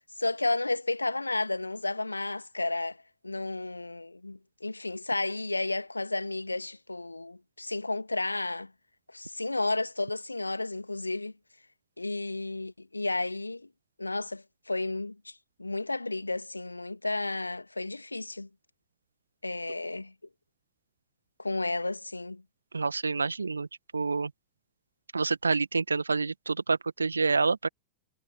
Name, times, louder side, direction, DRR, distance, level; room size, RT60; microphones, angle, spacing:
voice 1, 0.0-3.0 3.2-8.7 9.1-11.3 12.0-13.7 14.0-15.3 15.6-18.5 19.4-20.1 21.4-22.4, left 2 dB, 85° left, 2.3 m, -32 dB
voice 2, 22.7-23.7 23.9-24.3 25.1-27.7, right 4 dB, 80° right, 1.8 m, -27 dB
figure-of-eight pair, 90°, 0 cm